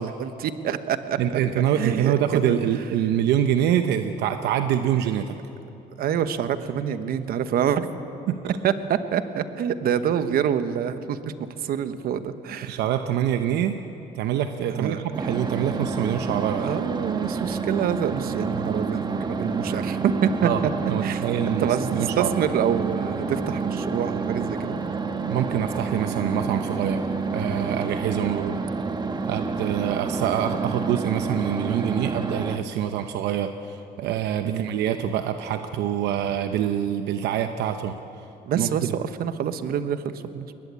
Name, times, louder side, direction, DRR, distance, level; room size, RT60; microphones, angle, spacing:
voice 1, 0.0-1.4 1.8-2.6 6.0-7.9 8.6-11.3 11.6-12.8 14.7-15.0 16.6-20.5 21.0-21.2 21.6-24.8 28.4-28.5 34.4-34.7 38.5-40.5, right 8 dB, 65° right, 11 dB, 1.2 m, -26 dB
voice 2, 1.2-5.4 8.3-8.4 12.6-13.7 14.1-16.8 20.4-22.3 25.3-27.0 27.3-28.6 29.3-37.9 38.5-38.7, right 10 dB, 80° right, 8 dB, 0.9 m, -25 dB
sound 1, 15.1-32.6, right 4 dB, 25° right, 1.3 m, -29 dB
21.5 x 19.5 x 8.3 m, 2.9 s
cardioid pair, 110°, 17 cm